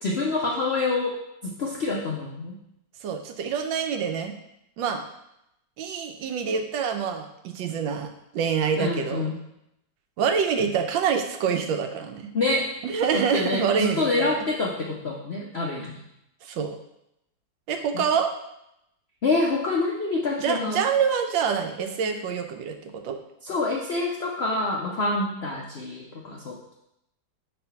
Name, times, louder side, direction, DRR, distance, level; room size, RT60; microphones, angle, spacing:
voice 1, 0.0-2.6 8.8-9.4 12.3-12.7 13.1-16.0 17.9-18.0 19.2-20.9 23.4-26.7, left 3 dB, 75° left, -2 dB, 0.5 m, -27 dB
voice 2, 3.0-4.3 4.8-5.0 5.8-9.3 10.2-12.3 12.8-14.4 16.4-16.8 17.7-18.3 20.4-23.2, right 6 dB, 80° right, 6 dB, 1.4 m, -26 dB
4.4 x 4.3 x 5.5 m, 0.81 s
omnidirectional pair, 2.1 m